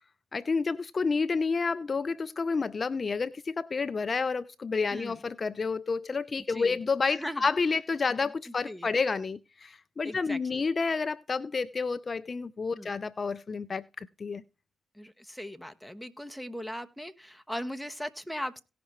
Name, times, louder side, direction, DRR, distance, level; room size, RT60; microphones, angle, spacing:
voice 1, 0.3-14.4, left 4 dB, 40° left, 0.4 m, -30 dB
voice 2, 4.9-5.2 6.5-6.8 7.1-7.5 8.6-8.9 10.0-10.6 12.7-12.9 14.9-18.6, equal, ahead, 1.2 m, -39 dB
17.5 x 5.9 x 3.0 m
hypercardioid pair, 50°, 0 cm